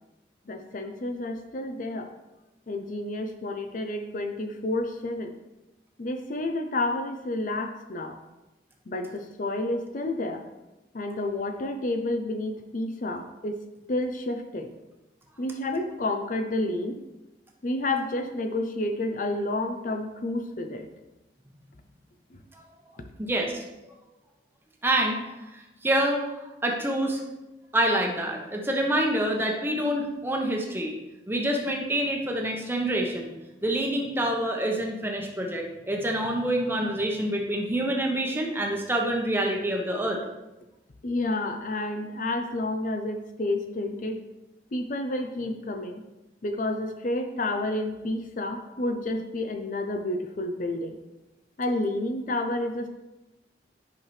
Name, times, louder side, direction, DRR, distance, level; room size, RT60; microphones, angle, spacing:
voice 1, 0.5-2.1 2.7-5.3 6.0-8.2 8.9-10.5 10.9-13.6 13.9-14.7 15.4-17.0 17.6-20.9 22.3-22.4 23.0-23.1 41.0-44.2 44.7-46.0 46.4-51.0 51.6-52.9, left 2 dB, 50° left, 6 dB, 0.6 m, -30 dB
voice 2, 23.2-23.6 24.8-27.2 27.7-30.9 31.3-33.3 33.6-40.2, right 1 dB, 15° right, 1 dB, 1.0 m, -27 dB
10.5 x 5.7 x 3.2 m, 1.0 s
head